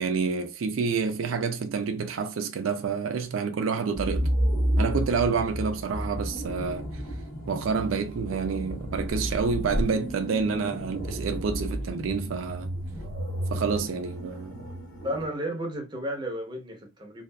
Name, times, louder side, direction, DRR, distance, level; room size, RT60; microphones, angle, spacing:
voice 1, 0.0-4.3 4.8-6.9 7.5-12.7 13.5-14.7, right 5 dB, 85° right, 0.4 m, -28 dB
sound 1, 3.9-15.2, equal, 50° left, 1.1 m, -31 dB
voice 2, 15.0-17.2, equal, 25° right, 0.7 m, -33 dB
2.6 x 2.4 x 2.2 m
head